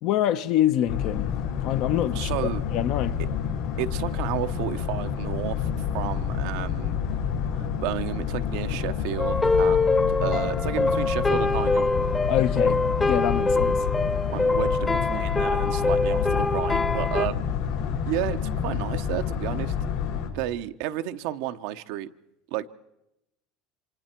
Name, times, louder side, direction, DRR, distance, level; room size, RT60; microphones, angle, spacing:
voice 1, 0.0-2.3 2.7-3.2 10.3-10.4 12.3-13.8, left 11 dB, 65° left, 0.9 m, -26 dB
Boat Water vehicle, 0.9-20.3, left 7 dB, 90° left, 5.6 m, -29 dB
voice 2, 2.1-2.6 3.8-5.7 5.9-7.0 7.8-11.9 14.3-17.5 18.1-19.7 20.3-22.1 22.5-22.7, right 13 dB, 75° right, 0.9 m, -32 dB
sound 1, 9.2-17.3, left 3 dB, 15° left, 0.9 m, -24 dB
28.5 x 25.5 x 4.5 m
supercardioid pair, 110°, 0 cm